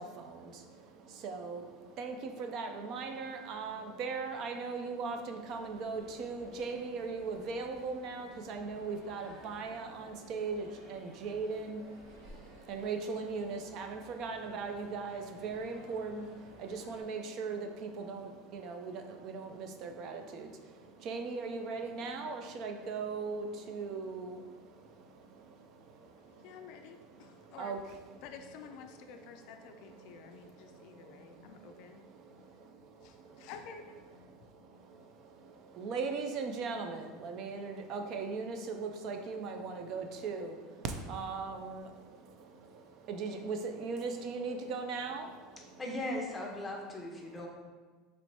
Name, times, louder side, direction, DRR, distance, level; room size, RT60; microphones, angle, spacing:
voice 1, 0.0-27.9 29.6-32.7 33.2-33.5 34.9-45.8 47.3-47.4, right 4 dB, 45° right, 5 dB, 0.4 m, -39 dB
sound 1, 5.4-17.0, right 1 dB, 75° right, 1.2 m, -56 dB
voice 2, 26.1-27.8 28.2-32.0 33.0-34.0, left 6 dB, 60° left, 6 dB, 0.3 m, -51 dB
voice 3, 45.8-47.5, left 1 dB, 10° left, -1 dB, 0.6 m, -38 dB
3.0 x 2.7 x 4.5 m, 1.4 s
supercardioid pair, 140°, 0 cm